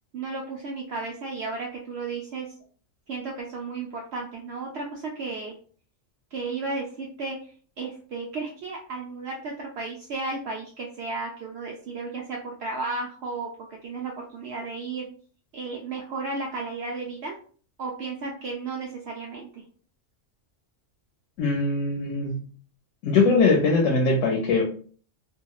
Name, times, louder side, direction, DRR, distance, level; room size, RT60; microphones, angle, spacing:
voice 1, 0.1-2.5 3.1-5.5 6.3-7.5 7.8-15.1 15.5-17.4 17.8-19.6, right 3 dB, 65° right, 0 dB, 0.7 m, -34 dB
voice 2, 21.4-22.4 23.0-24.6, left 3 dB, 85° left, 0 dB, 1.0 m, -21 dB
2.8 x 2.5 x 2.3 m, 0.43 s
omnidirectional pair, 1.3 m